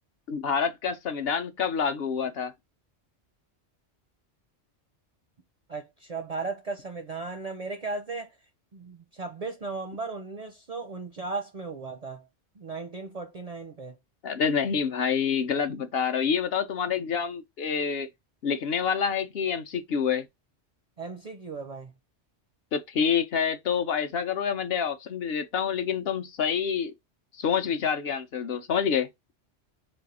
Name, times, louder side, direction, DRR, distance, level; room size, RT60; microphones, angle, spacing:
voice 1, 0.3-2.5 14.2-18.1 18.4-20.3 22.7-26.9 27.4-29.1, left 7 dB, 65° left, 0.9 m, -27 dB
voice 2, 5.7-8.4 8.7-12.3 12.6-13.9 21.0-21.9, right 3 dB, 50° right, 0.5 m, -36 dB
3.3 x 2.4 x 4.0 m
omnidirectional pair, 1.2 m